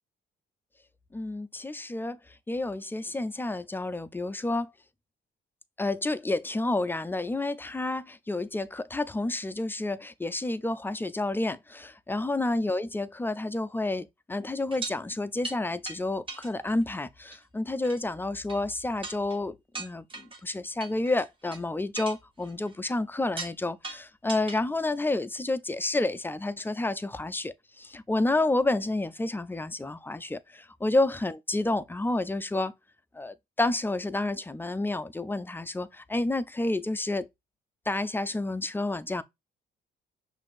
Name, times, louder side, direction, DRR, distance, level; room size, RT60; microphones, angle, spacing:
voice 1, 1.1-2.2 2.5-4.7 5.8-32.7 33.1-37.3 37.9-39.2, left 2 dB, 10° left, 0.3 m, -30 dB
sound 1, 14.7-15.0 15.4-15.6 15.9-16.0 16.3-16.9 17.3-17.4 17.8-18.0 18.5-18.6 19.0-19.4 19.7-20.4 20.8-21.6 21.9-23.0 23.4-23.6 23.8-24.6 25.0-25.1, right 3 dB, 25° right, 1.0 m, -39 dB
5.8 x 2.6 x 2.4 m
cardioid pair, 90°, 20 cm